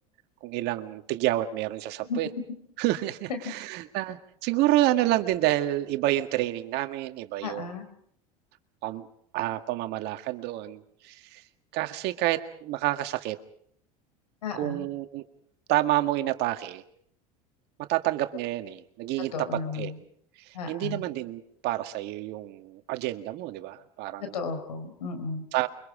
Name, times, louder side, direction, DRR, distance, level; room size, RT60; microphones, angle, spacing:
voice 1, 0.4-2.3 2.8-7.7 8.8-9.1 9.3-11.4 11.7-13.4 14.5-15.2 15.7-16.8 17.8-19.9 20.4-24.3 25.5-25.7, right 15 dB, 60° right, 8 dB, 1.8 m, -29 dB
voice 2, 7.4-7.9 14.4-14.9 19.3-20.0 20.5-21.0 24.3-25.4, left 4 dB, 85° left, 8 dB, 4.2 m, -34 dB
29.0 x 24.5 x 5.0 m, 0.64 s
hypercardioid pair, 85°, 20 cm